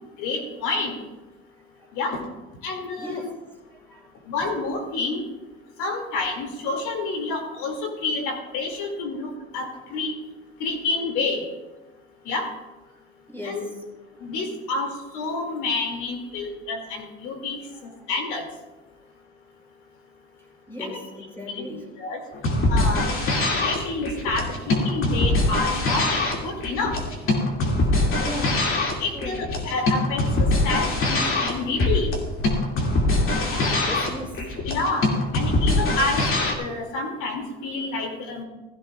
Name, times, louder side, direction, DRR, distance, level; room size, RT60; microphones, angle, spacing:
voice 1, 0.2-1.0 1.9-2.2 2.6-3.3 4.3-5.2 5.8-10.1 10.6-11.4 12.3-12.5 13.4-13.7 14.2-17.6 18.1-18.5 20.8-21.0 21.5-21.6 22.0-22.2 22.7-23.1 23.6-27.0 29.0-32.1 33.5-33.8 34.7-36.3 36.6-38.4, left 3 dB, 80° left, 3 dB, 2.7 m, -28 dB
voice 2, 3.0-4.1 13.3-13.8 14.2-14.3 17.7-17.9 20.7-21.9 28.2-28.6 29.1-29.4 33.8-34.5, left 1 dB, 10° left, 0 dB, 3.9 m, -37 dB
sound 1, 22.3-36.5, left 2 dB, 45° left, 2.4 m, -23 dB
16.0 x 15.0 x 2.4 m, 1.1 s
cardioid pair, 120°, 30 cm